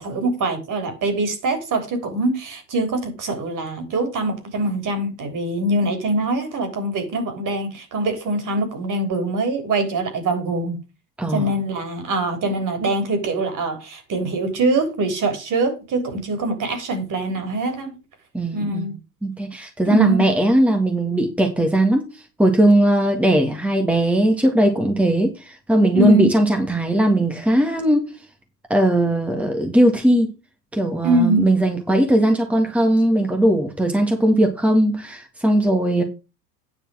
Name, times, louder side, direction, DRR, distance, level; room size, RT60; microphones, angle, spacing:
voice 1, 0.0-10.8 11.3-17.9 18.5-19.0 19.9-20.3 25.9-26.3 31.0-31.5, right 2 dB, 40° right, 3.7 m, -23 dB
voice 2, 11.2-11.5 18.3-18.9 19.2-28.1 28.7-30.3 30.7-36.0, right 1 dB, 5° right, 1.8 m, -19 dB
9.8 x 5.4 x 6.2 m
figure-of-eight pair, 75°, 49 cm